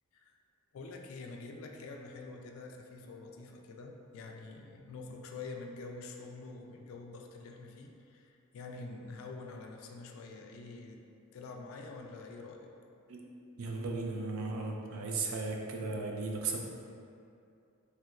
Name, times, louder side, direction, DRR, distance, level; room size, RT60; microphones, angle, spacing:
voice 1, 0.7-12.7, left 3 dB, 65° left, 3 dB, 0.3 m, -46 dB
voice 2, 13.6-16.6, right 3 dB, 70° right, 0 dB, 0.4 m, -36 dB
3.2 x 2.9 x 2.4 m, 2.5 s
head